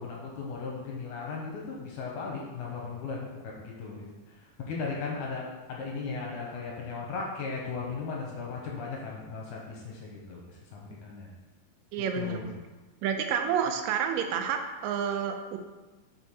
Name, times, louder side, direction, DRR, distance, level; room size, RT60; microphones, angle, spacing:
voice 1, 0.0-11.3 12.1-12.5, left 4 dB, 75° left, -2 dB, 2.2 m, -37 dB
voice 2, 11.9-12.6 13.0-15.6, right 7 dB, 90° right, 5 dB, 2.3 m, -29 dB
5.4 x 4.2 x 4.6 m, 1.2 s
omnidirectional pair, 3.8 m